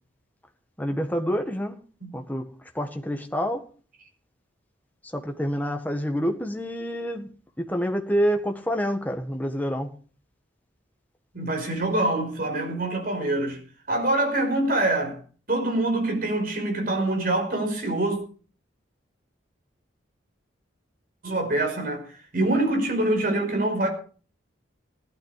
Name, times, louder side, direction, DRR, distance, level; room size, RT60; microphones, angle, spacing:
voice 1, 0.8-1.8 2.1-2.4 2.7-3.6 5.0-7.3 7.6-9.9, equal, 10° left, 1.7 m, -27 dB
voice 2, 11.3-13.6 13.9-15.2 15.5-18.2 21.2-23.9, right 2 dB, 45° right, 5.3 m, -25 dB
17.0 x 12.0 x 5.0 m
head